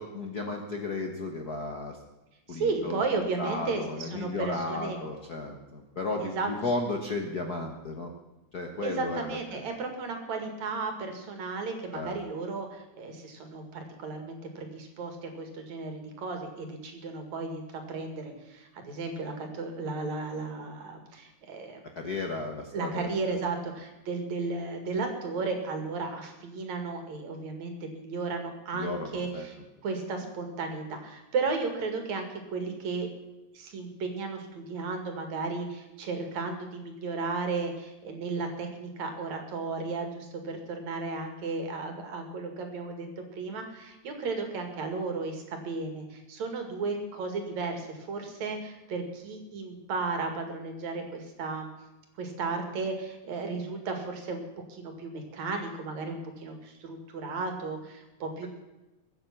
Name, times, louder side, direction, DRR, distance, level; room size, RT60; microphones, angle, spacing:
voice 1, 0.0-2.0 2.5-3.0 3.4-8.1 8.5-9.6 11.9-12.2 22.0-23.1 28.7-29.5, left 3 dB, 45° left, 2 dB, 1.3 m, -34 dB
voice 2, 2.5-5.0 6.2-6.5 8.8-21.8 22.7-29.6 29.8-33.1 33.5-51.7 52.2-54.4 54.7-58.5, right 4 dB, 70° right, 5 dB, 3.4 m, -34 dB
22.0 x 8.8 x 6.0 m, 0.99 s
omnidirectional pair, 3.3 m